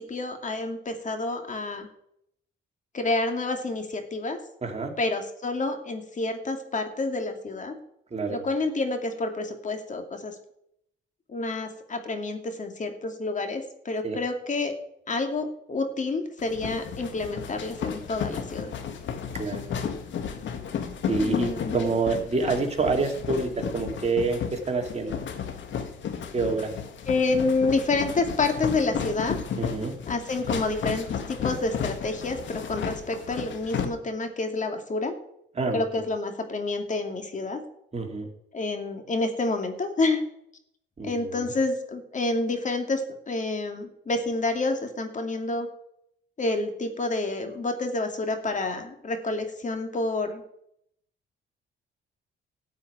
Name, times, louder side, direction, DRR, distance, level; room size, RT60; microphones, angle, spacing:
voice 1, 0.0-1.9 2.9-4.4 5.0-7.7 8.3-10.3 11.3-14.7 15.1-18.7 21.2-21.8 27.1-29.4 30.1-35.1 35.7-37.6 38.5-40.2 41.0-45.7 46.4-50.4, left 3 dB, 40° left, 5 dB, 2.3 m, -28 dB
voice 2, 4.6-4.9 8.1-8.4 14.0-14.2 19.4-19.7 21.1-25.2 26.3-26.7 29.6-29.9 35.6-35.8 37.9-38.3 41.0-41.3, right 3 dB, 35° right, 3 dB, 2.6 m, -27 dB
sound 1, 16.4-33.8, left 7 dB, 70° left, 1.8 m, -33 dB
13.5 x 5.6 x 9.5 m, 0.73 s
cardioid pair, 90°, 20 cm